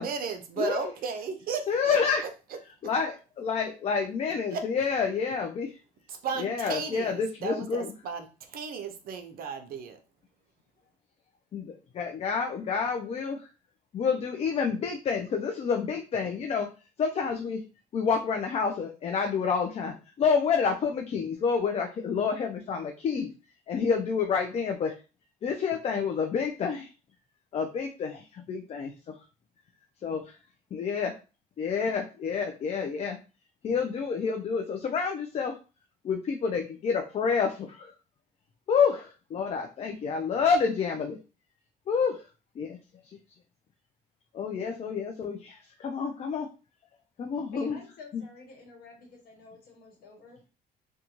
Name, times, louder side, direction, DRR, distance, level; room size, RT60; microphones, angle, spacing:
voice 1, 0.0-2.3 4.5-4.6 6.1-10.0, right 5 dB, 60° right, 6 dB, 0.6 m, -35 dB
voice 2, 1.7-2.2 2.8-5.8 6.4-7.9 11.5-13.5 13.9-16.7 17.0-17.6 17.9-23.3 23.7-24.9 25.4-26.9 27.5-28.8 30.0-30.2 30.7-31.1 31.6-33.2 33.6-35.6 36.0-37.9 38.7-41.2 41.9-42.3 42.6-42.8 43.0-43.2 44.3-46.5 47.2-47.8 48.1-48.2, left 6 dB, 40° left, 3 dB, 0.4 m, -28 dB
voice 3, 47.5-50.5, left 3 dB, 65° left, 1 dB, 1.2 m, -50 dB
2.5 x 2.3 x 2.9 m, 0.33 s
cardioid pair, 110°, 17 cm